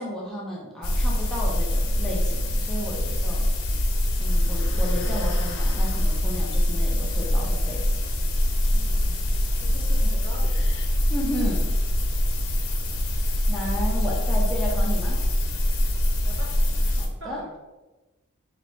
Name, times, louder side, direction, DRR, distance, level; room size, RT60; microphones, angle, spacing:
voice 1, 0.0-3.5 4.2-8.0 11.1-11.7 13.5-15.2 16.9-17.4, equal, ahead, -5 dB, 0.6 m, -33 dB
sound 1, 0.8-17.1, left 1 dB, 85° left, 0.8 m, -23 dB
sound 2, 4.1-6.5 10.4-10.9, left 3 dB, 60° left, 0.5 m, -42 dB
voice 2, 8.7-9.2 9.6-10.6 16.2-16.5 17.2-17.6, right 2 dB, 60° right, -4 dB, 1.1 m, -42 dB
3.1 x 2.9 x 4.3 m, 1.1 s
head